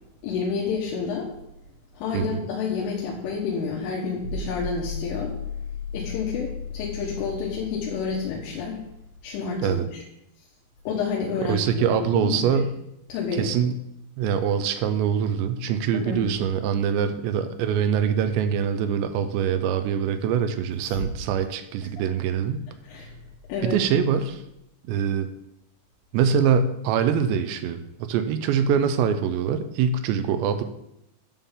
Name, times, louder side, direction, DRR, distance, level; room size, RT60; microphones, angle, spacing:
voice 1, 0.2-1.3 1.9-5.3 5.9-8.8 9.2-10.0 10.9-12.5 13.1-13.5 15.9-16.2 20.8-21.0 22.0-22.1 22.8-23.2 23.5-23.8, left 5 dB, 80° left, -3 dB, 3.7 m, -29 dB
sound 1, 4.2-9.3, left 5 dB, 55° right, 1.5 m, -35 dB
voice 2, 11.5-12.7 13.4-13.7 14.2-22.6 23.6-24.4 24.9-25.3 26.1-30.6, right 7 dB, 80° right, 9 dB, 2.6 m, -24 dB
11.0 x 3.8 x 7.2 m, 0.83 s
omnidirectional pair, 5.6 m